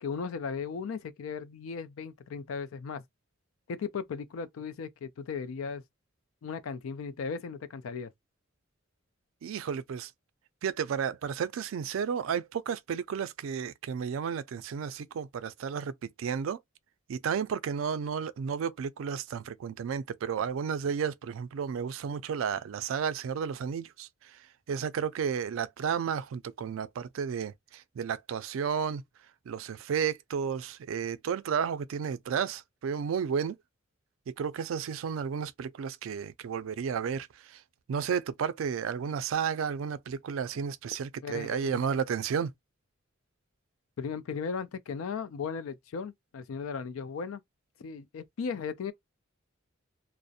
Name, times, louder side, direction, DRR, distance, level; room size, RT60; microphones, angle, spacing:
voice 1, 0.0-3.0 3.7-5.8 6.4-8.1 41.2-41.8 44.0-47.4 47.8-48.9, left 5 dB, 90° left, 0.4 m, -36 dB
voice 2, 9.4-10.1 10.6-16.6 17.1-24.1 24.7-29.0 29.5-33.6 34.3-37.6 37.9-42.5, right 7 dB, 80° right, 0.3 m, -32 dB
2.4 x 2.0 x 2.6 m
head